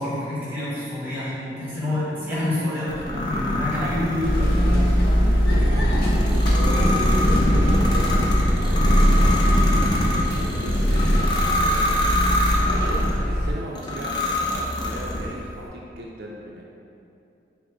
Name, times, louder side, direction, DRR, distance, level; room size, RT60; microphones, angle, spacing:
voice 1, 0.0-4.9, left 1 dB, 10° right, -9 dB, 1.1 m, -28 dB
sound 1, 2.9-13.2 13.8-15.4, left 1 dB, 25° left, 0.4 m, -24 dB
sound 2, 4.2-13.5, equal, 60° left, 0.7 m, -21 dB
voice 2, 6.3-16.6, right 1 dB, 60° right, -2 dB, 0.4 m, -37 dB
6.0 x 2.0 x 3.5 m, 2.7 s
head